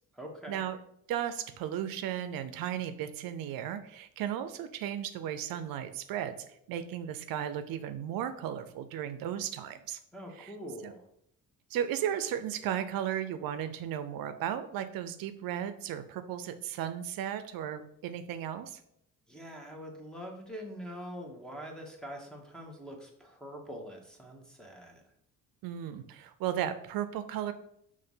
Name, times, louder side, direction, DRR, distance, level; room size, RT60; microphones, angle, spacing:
voice 1, 0.1-0.6 10.1-11.1 19.3-25.0, equal, ahead, 0 dB, 1.3 m, -44 dB
voice 2, 1.1-6.4 6.7-10.0 10.4-10.5 10.8-10.9 11.7-18.8 25.6-27.5, right 10 dB, 80° right, 10 dB, 0.6 m, -35 dB
5.6 x 3.2 x 5.5 m, 0.71 s
cardioid pair, 110°, 34 cm